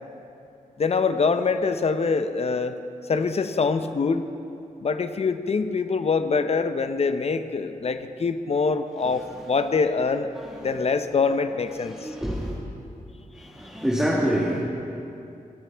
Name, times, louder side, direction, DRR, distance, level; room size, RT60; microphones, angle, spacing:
voice 1, 0.8-2.7 3.1-4.2 4.8-10.3 10.6-12.1, left 4 dB, 45° left, 9 dB, 0.6 m, -24 dB
voice 2, 10.4-10.8 11.8-12.6 13.3-14.6, equal, 5° right, -5 dB, 1.5 m, -27 dB
25.5 x 9.4 x 3.4 m, 2.7 s
wide cardioid pair, 145°, 15 cm